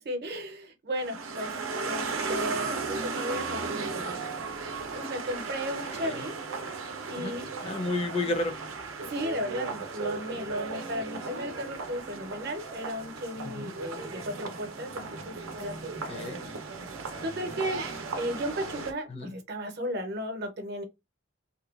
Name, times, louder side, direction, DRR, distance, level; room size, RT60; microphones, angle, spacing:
voice 1, 0.0-1.6 1.8-4.4 4.9-6.4 7.1-7.5 9.0-15.9 17.2-20.8, equal, 55° right, 0.7 m, -35 dB
sound 1, 1.0-18.9, right 4 dB, 90° right, 0.6 m, -36 dB
voice 2, 7.6-8.5 13.4-13.7 16.1-16.4 19.1-19.3, left 2 dB, 30° left, 0.5 m, -31 dB
2.8 x 2.2 x 2.3 m
head